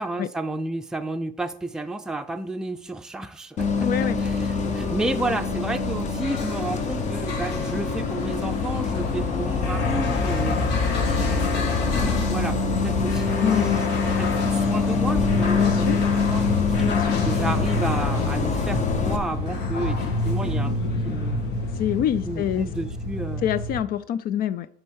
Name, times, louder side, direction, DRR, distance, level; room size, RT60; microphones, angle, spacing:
voice 1, 0.0-10.6 11.1-13.8 14.1-16.0 16.3-20.7 21.0-21.5 22.3-23.5, right 2 dB, 5° right, 6 dB, 0.4 m, -31 dB
Bus, 3.6-19.2, left 4 dB, 45° left, 0.9 m, -25 dB
voice 2, 3.8-4.2 13.4-13.8 15.6-16.0 16.8-17.2 21.8-22.7 23.4-24.7, left 10 dB, 60° left, 15 dB, 0.4 m, -25 dB
sound 1, 6.2-23.8, left 2 dB, 80° left, 1.4 m, -28 dB
7.5 x 3.5 x 6.3 m, 0.64 s
cardioid pair, 110°, 17 cm